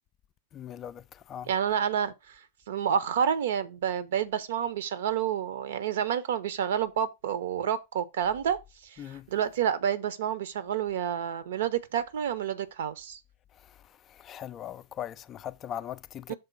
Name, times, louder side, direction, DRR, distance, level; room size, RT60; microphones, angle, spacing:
voice 1, 0.5-1.0 1.3-1.5 9.0-9.3 14.2-16.3, left 10 dB, 30° left, 0.3 m, -39 dB
voice 2, 1.5-2.4 2.7-8.6 8.8-13.2 16.3-16.4, right 8 dB, 60° right, 0.8 m, -29 dB
6.9 x 3.7 x 5.3 m
figure-of-eight pair, 90°, 0 cm